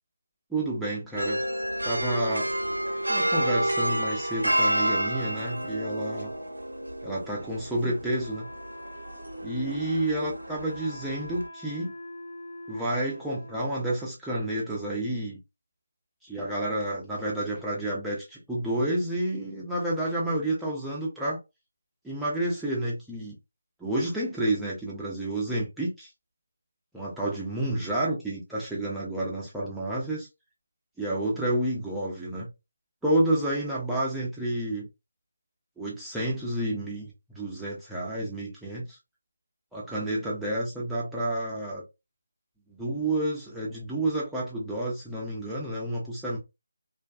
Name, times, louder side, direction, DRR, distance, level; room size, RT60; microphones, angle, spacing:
voice 1, 0.5-1.4 1.8-2.5 3.1-6.3 7.0-8.5 9.4-11.9 12.7-15.4 16.2-21.4 22.0-23.4 23.8-26.1 26.9-30.3 31.0-32.5 33.0-34.9 35.8-39.0 39.7-41.8 42.7-46.4, right 1 dB, ahead, 0.7 m, -30 dB
sound 1, 1.2-11.5, right 1 dB, 90° right, 0.7 m, -30 dB
Wind instrument woodwind instrument, 8.2-14.1, equal, 50° left, 1.0 m, -43 dB
2.5 x 2.2 x 2.3 m
figure-of-eight pair, 160°, 0 cm